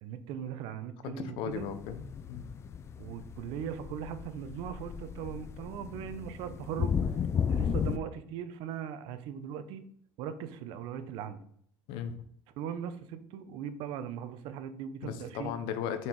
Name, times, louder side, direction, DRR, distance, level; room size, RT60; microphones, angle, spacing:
voice 1, 0.0-1.7 3.0-7.2 7.5-9.8 10.2-11.4 12.6-15.5, right 8 dB, 70° right, 11 dB, 0.8 m, -39 dB
voice 2, 1.0-2.5 11.9-12.1 15.0-16.1, left 8 dB, 75° left, 10 dB, 0.9 m, -36 dB
sound 1, 1.5-8.0, left 7 dB, 30° left, 0.4 m, -34 dB
6.0 x 4.6 x 4.7 m, 0.64 s
cardioid pair, 130°, 9 cm